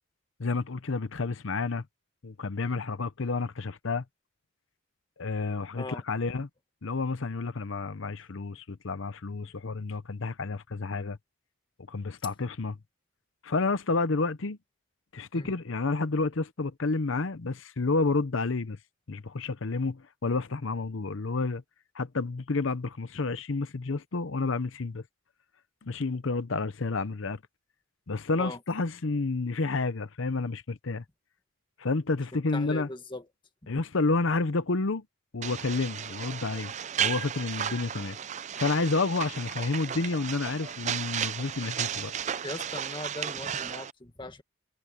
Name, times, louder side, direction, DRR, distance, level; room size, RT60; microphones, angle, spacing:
voice 1, 0.4-1.8 2.2-4.0 5.2-6.5 6.8-11.2 11.9-12.8 13.4-14.6 15.1-18.8 19.1-21.6 21.9-25.0 25.8-27.4 28.1-31.0 31.8-32.9 33.7-35.0 35.3-36.7 37.0-38.2 38.6-42.1, left 3 dB, 65° left, 0.8 m, -30 dB
voice 2, 32.5-33.3 33.6-33.7 42.4-44.4, left 2 dB, 25° left, 1.8 m, -39 dB
sound 1, 35.4-43.9, right 9 dB, 35° right, 0.4 m, -34 dB
head